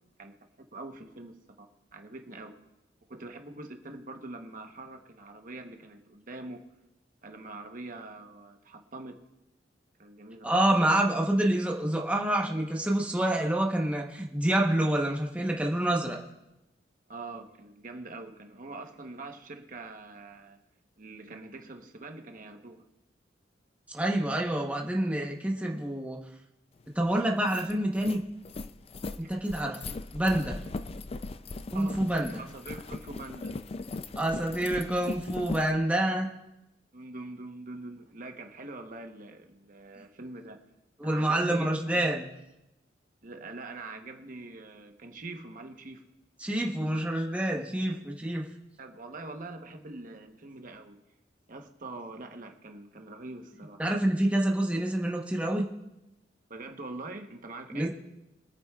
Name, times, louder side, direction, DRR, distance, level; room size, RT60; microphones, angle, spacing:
voice 1, 0.7-2.6 3.1-6.6 7.2-9.2 10.0-10.6 17.1-20.6 21.0-22.8 29.2-29.3 31.7-33.6 36.9-40.6 41.0-42.1 43.2-46.0 48.8-51.0 51.5-53.8 56.5-57.9, right 2 dB, 50° right, 5 dB, 1.0 m, -43 dB
voice 2, 10.4-16.2 23.9-26.2 26.9-28.2 29.2-30.6 31.7-32.4 34.2-36.3 41.0-42.3 46.4-48.4 53.8-55.7 57.7-57.9, right 1 dB, 10° right, -1 dB, 1.0 m, -27 dB
sound 1, 26.9-27.0 27.3-35.7, left 3 dB, 35° left, 0.4 m, -39 dB
24.0 x 9.2 x 2.4 m, 0.93 s
head